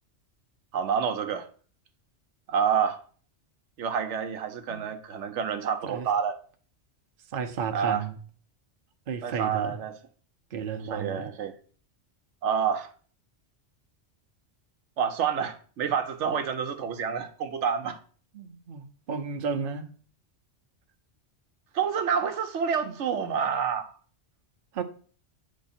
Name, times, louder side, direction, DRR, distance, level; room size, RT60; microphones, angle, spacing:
voice 1, 0.7-1.4 2.5-3.0 3.8-6.4 7.7-8.0 9.2-9.9 10.9-11.5 12.4-12.9 15.0-18.0 21.7-23.9, right 7 dB, 85° right, 1.0 m, -28 dB
voice 2, 7.3-8.2 9.1-9.8 10.5-11.3 18.3-19.9 22.8-22.9 24.7-24.8, right 6 dB, 55° right, 0.8 m, -33 dB
8.2 x 3.1 x 4.1 m
omnidirectional pair, 1.2 m